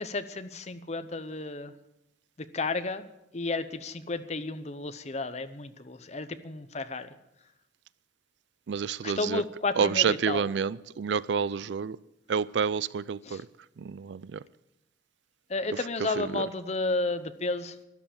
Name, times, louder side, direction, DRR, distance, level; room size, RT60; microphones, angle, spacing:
voice 1, 0.0-1.7 2.5-3.1 3.3-7.1 9.0-10.5 13.3-13.4 15.5-17.7, left 3 dB, 35° left, 11 dB, 0.8 m, -32 dB
voice 2, 8.7-9.4 9.8-12.0 12.3-13.5 13.8-14.4 15.7-16.5, right 6 dB, 70° right, 20 dB, 0.4 m, -29 dB
13.0 x 11.0 x 7.1 m, 0.91 s
head